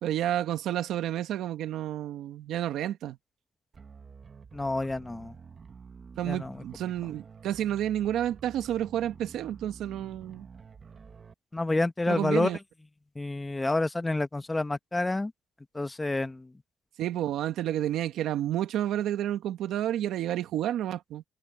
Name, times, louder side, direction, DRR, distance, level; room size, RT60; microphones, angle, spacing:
voice 1, 0.0-3.2 6.2-10.5 12.1-12.6 17.0-21.2, right 11 dB, 80° right, 1.6 m, -30 dB
sound 1, 3.7-11.3, right 5 dB, 40° right, 1.6 m, -49 dB
voice 2, 4.5-5.3 6.2-6.6 11.5-12.5 13.2-15.3 15.7-16.5, left 2 dB, 15° left, 1.0 m, -28 dB
cardioid pair, 90°, 0 cm